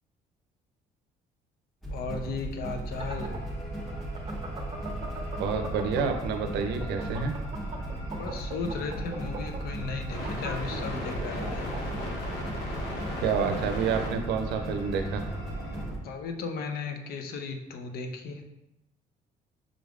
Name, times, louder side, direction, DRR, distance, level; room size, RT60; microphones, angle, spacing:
sound 1, 1.8-16.0, right 1 dB, ahead, 0.9 m, -37 dB
voice 1, 1.9-3.4 8.2-11.8 16.0-18.4, left 4 dB, 65° left, 5 dB, 0.6 m, -36 dB
sound 2, 2.7-6.3 6.7-12.0, right 4 dB, 30° right, 0.6 m, -40 dB
sound 3, 2.9-15.8, left 1 dB, 85° left, 0.9 m, -40 dB
voice 2, 5.4-7.3 13.2-15.2, right 6 dB, 80° right, 6 dB, 0.6 m, -28 dB
5.0 x 3.4 x 2.4 m, 0.89 s
cardioid pair, 110°, 17 cm